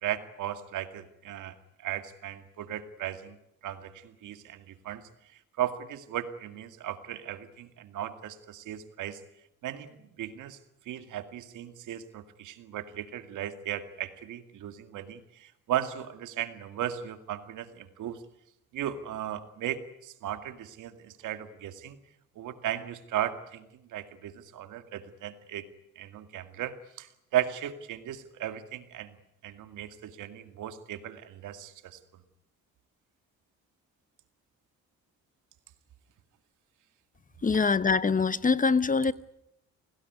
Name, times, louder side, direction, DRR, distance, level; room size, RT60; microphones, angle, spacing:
voice 1, 0.0-3.4 3.6-9.2 9.6-10.6 10.9-18.2 18.7-22.0 22.4-25.7 26.0-29.2 29.4-32.2, right 11 dB, 85° right, 2.2 m, -36 dB
voice 2, 37.4-39.1, left 4 dB, 25° left, 1.0 m, -24 dB
29.0 x 18.5 x 9.6 m
cardioid pair, 90°, 30 cm